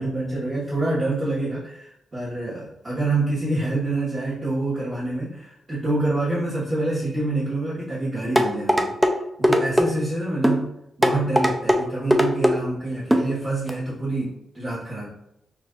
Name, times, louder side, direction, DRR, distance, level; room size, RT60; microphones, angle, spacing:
voice 1, 0.0-9.0 9.4-10.7 11.0-15.1, right 2 dB, 30° right, -10 dB, 1.3 m, -26 dB
sound 1, 8.4-9.1 9.4-9.9 10.4-10.6 11.0-11.8 12.1-12.5 13.1-13.3 13.7-13.8, equal, 5° right, 0.4 m, -18 dB
5.9 x 2.6 x 2.4 m, 0.80 s
cardioid pair, 100°, 0 cm